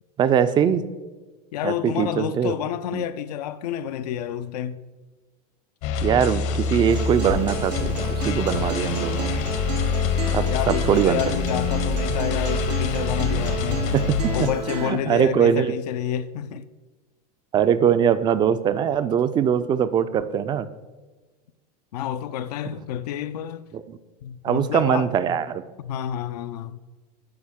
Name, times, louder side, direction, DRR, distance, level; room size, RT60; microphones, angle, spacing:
voice 1, 0.2-0.8 1.6-2.5 2.9-3.0 6.0-9.3 10.3-11.2 13.9-14.5 14.8-15.7 17.5-20.7 23.7-24.0 24.4-25.6, right 8 dB, 25° right, 0.3 m, -22 dB
voice 2, 1.5-4.8 10.5-13.9 14.3-16.6 21.9-23.7 24.2-25.1 25.8-26.8, left 10 dB, 85° left, 0.4 m, -29 dB
sound 1, 5.8-14.5, left 5 dB, 60° left, 0.8 m, -25 dB
Acoustic guitar, 6.9-14.9, right 6 dB, 85° right, 1.2 m, -32 dB
11.5 x 4.5 x 3.6 m
supercardioid pair, 115°, 20 cm